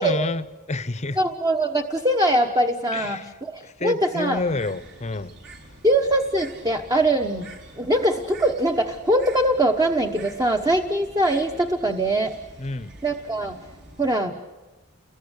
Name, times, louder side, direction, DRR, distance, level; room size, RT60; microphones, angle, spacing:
voice 1, 0.0-1.2 2.9-3.3 3.6-5.3 12.6-12.9, left 2 dB, 35° left, 0.8 m, -29 dB
voice 2, 1.2-4.4 5.8-7.5 7.8-12.3 13.0-13.6 14.0-14.3, right 1 dB, 20° right, 1.1 m, -22 dB
Bird, 4.4-14.2, right 2 dB, 60° right, 4.5 m, -46 dB
29.5 x 22.0 x 8.2 m
head